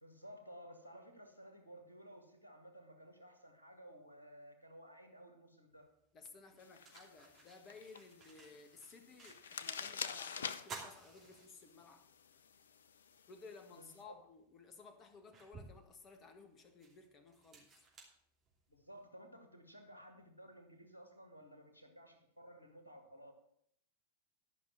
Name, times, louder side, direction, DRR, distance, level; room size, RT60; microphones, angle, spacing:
voice 1, 0.0-5.9 13.8-14.2 18.7-23.3, equal, 80° left, 1.8 m, -56 dB
sound 1, 5.8-5.9 6.4-9.8 10.1-10.2 10.6-12.1 12.5-12.6 14.0-14.1 14.7-18.9, right 4 dB, 25° right, 2.9 m, -55 dB
voice 2, 6.1-12.1 13.3-17.9, left 4 dB, 25° left, 1.5 m, -57 dB
sound 2, 6.6-14.0, left 6 dB, 65° left, 0.5 m, -48 dB
12.0 x 5.9 x 7.4 m
figure-of-eight pair, 90°, 0 cm